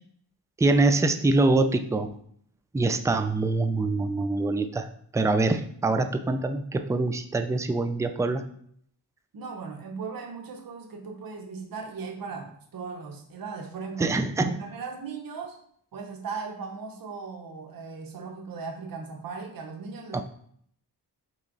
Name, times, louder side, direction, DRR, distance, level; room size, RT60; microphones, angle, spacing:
voice 1, 0.6-2.1 2.7-4.9 5.1-8.5 14.0-14.6 20.1-20.2, right 2 dB, 10° right, 8 dB, 0.3 m, -24 dB
voice 2, 9.3-14.1 14.4-15.6 15.9-20.2, right 5 dB, 60° right, 2 dB, 0.7 m, -38 dB
3.3 x 3.1 x 3.8 m, 0.65 s
cardioid pair, 55°, 40 cm